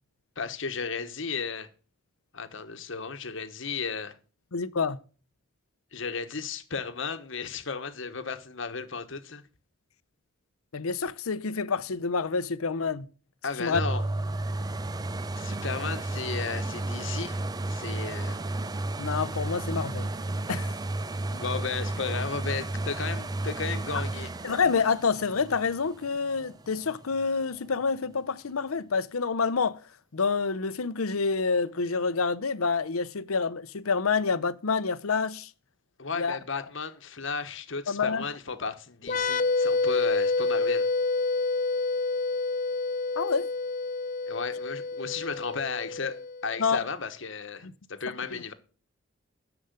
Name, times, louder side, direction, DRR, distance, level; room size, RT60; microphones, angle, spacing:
voice 1, 0.4-1.7 2.3-4.2 5.9-9.4 13.4-14.0 15.3-17.4 17.7-18.4 21.3-24.3 36.0-40.9 44.3-48.5, left 5 dB, 60° left, 1.2 m, -34 dB
voice 2, 4.5-5.0 10.7-13.1 13.6-13.8 19.0-20.1 20.5-20.7 24.4-29.8 30.1-35.5 36.2-36.4 37.9-38.2 43.2-43.5 46.6-46.8 47.6-47.7, left 5 dB, 90° left, 0.7 m, -27 dB
sound 1, 13.7-27.4 28.0-28.1, right 2 dB, 20° right, 0.4 m, -33 dB
sound 2, 39.0-46.5, left 3 dB, 40° left, 0.6 m, -28 dB
10.5 x 7.0 x 6.8 m
head